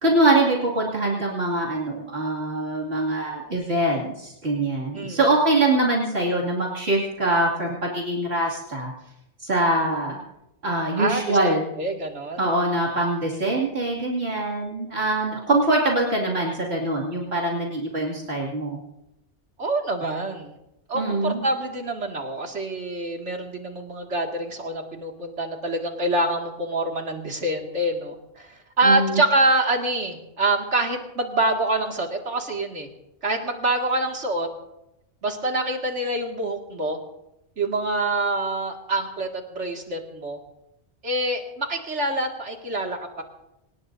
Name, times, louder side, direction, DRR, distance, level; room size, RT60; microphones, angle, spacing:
voice 1, 0.0-8.9 9.4-10.2 10.6-11.7 12.4-18.8 20.9-21.4 28.8-29.2, right 2 dB, 65° right, -4 dB, 2.8 m, -23 dB
voice 2, 11.0-12.5 19.6-20.6 20.9-32.9 33.2-34.5 35.2-37.0 37.6-40.4 41.0-43.2, right 2 dB, 85° right, 2 dB, 2.6 m, -26 dB
25.0 x 19.5 x 2.7 m, 0.87 s
omnidirectional pair, 1.2 m